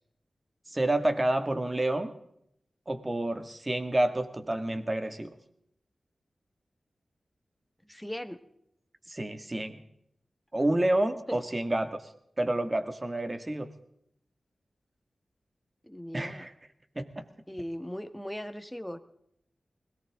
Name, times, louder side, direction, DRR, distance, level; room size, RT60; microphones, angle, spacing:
voice 1, 0.7-2.1 2.9-5.4 9.1-9.8 10.5-12.1 12.4-13.7 16.1-16.5 17.0-17.3, right 1 dB, 30° right, 8 dB, 2.0 m, -29 dB
voice 2, 7.8-8.4 11.3-11.4 15.8-16.5 17.5-19.0, equal, 5° left, 9 dB, 1.5 m, -38 dB
21.0 x 18.0 x 3.7 m, 0.73 s
cardioid pair, 50°, 0 cm